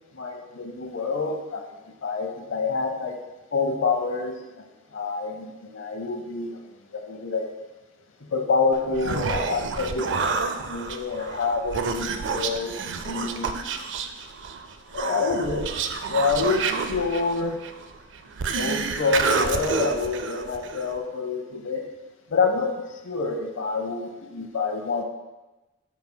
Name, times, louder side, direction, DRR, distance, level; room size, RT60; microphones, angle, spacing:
voice 1, 0.1-1.7 2.0-3.2 3.5-4.6 4.9-6.7 6.9-7.5 8.2-10.3 10.6-12.8 13.0-13.5 14.9-15.7 16.1-16.6 16.9-17.6 18.5-21.8 22.3-25.0, left 4 dB, 80° left, 3 dB, 0.8 m, -27 dB
Human voice, 8.7-21.0, right 5 dB, 65° right, 0.4 m, -29 dB
12.5 x 5.2 x 2.2 m, 1.1 s
head